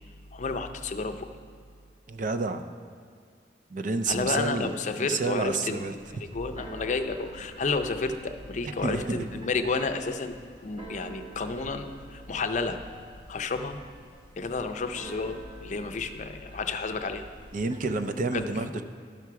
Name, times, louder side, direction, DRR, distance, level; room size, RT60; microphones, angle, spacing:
voice 1, 0.3-1.3 4.1-10.4 10.6-12.8 13.3-13.8 14.4-17.3 18.3-18.4, left 3 dB, 45° left, 7 dB, 0.5 m, -31 dB
voice 2, 2.1-2.6 3.7-5.9 8.8-9.2 17.5-18.8, right 3 dB, 45° right, 8 dB, 0.5 m, -29 dB
Keyboard (musical), 5.9-18.0, right 1 dB, 25° right, 1.2 m, -48 dB
12.0 x 5.9 x 4.6 m, 2.2 s
head